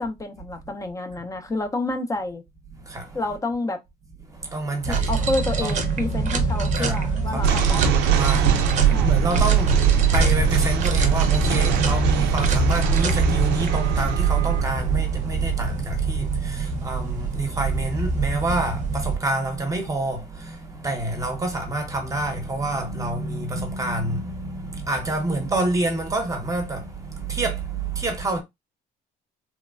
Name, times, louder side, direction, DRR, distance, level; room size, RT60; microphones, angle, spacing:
voice 1, 0.0-2.4 3.1-3.8 4.9-8.0 8.9-9.2, left 2 dB, 20° left, 0.5 m, -29 dB
voice 2, 2.7-3.2 4.2-5.3 5.6-5.9 6.7-7.7 8.1-28.4, right 2 dB, 20° right, 0.8 m, -28 dB
sound 1, 4.8-19.2, right 3 dB, 45° right, 0.6 m, -25 dB
sound 2, 5.2-7.4, left 3 dB, 85° left, 0.9 m, -35 dB
sound 3, 7.4-18.7, right 7 dB, 90° right, 0.5 m, -22 dB
3.1 x 2.1 x 2.3 m
cardioid pair, 110°, 17 cm